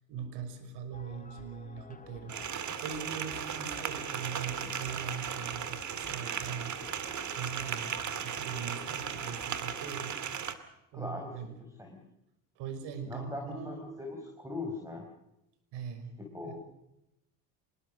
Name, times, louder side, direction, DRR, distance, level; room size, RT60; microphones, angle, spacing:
voice 1, 0.1-2.4 2.8-6.7 7.3-10.2 10.9-11.5 12.6-13.8 15.7-16.1 16.4-16.6, right 6 dB, 70° right, 9 dB, 5.8 m, -41 dB
sound 1, 0.9-9.9, left 4 dB, 20° left, 1.6 m, -52 dB
sound 2, 2.3-10.5, right 8 dB, 40° right, 2.2 m, -37 dB
voice 2, 10.9-11.5 11.8-12.0 13.0-15.1 16.2-16.6, left 2 dB, 5° right, 3 dB, 4.7 m, -40 dB
25.5 x 20.5 x 6.4 m, 0.86 s
supercardioid pair, 105°, 43 cm